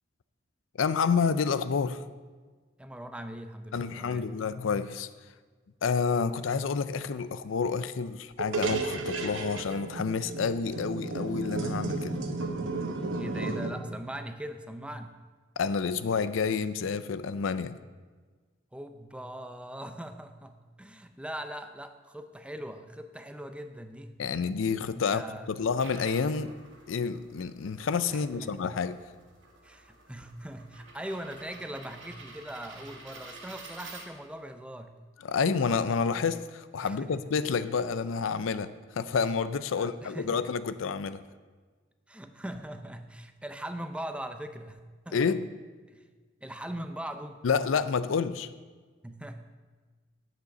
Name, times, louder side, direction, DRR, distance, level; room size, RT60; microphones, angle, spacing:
voice 1, 0.8-2.0 3.7-5.1 5.8-12.2 15.6-17.8 24.2-25.2 25.5-26.5 26.9-29.0 35.2-41.2 45.1-45.5 47.4-48.5, left 5 dB, 85° left, 0.5 m, -29 dB
voice 2, 2.8-4.3 13.2-15.2 18.7-24.2 25.0-25.5 28.1-28.6 29.6-34.9 36.8-37.2 39.7-40.4 42.1-44.8 45.1-45.2 45.9-46.1 46.4-47.5 49.0-49.4, right 1 dB, 5° right, 0.5 m, -41 dB
sound 1, 8.4-13.7, right 3 dB, 85° right, 1.0 m, -33 dB
sound 2, 25.5-34.5, right 3 dB, 70° right, 1.9 m, -50 dB
7.5 x 6.7 x 8.0 m
head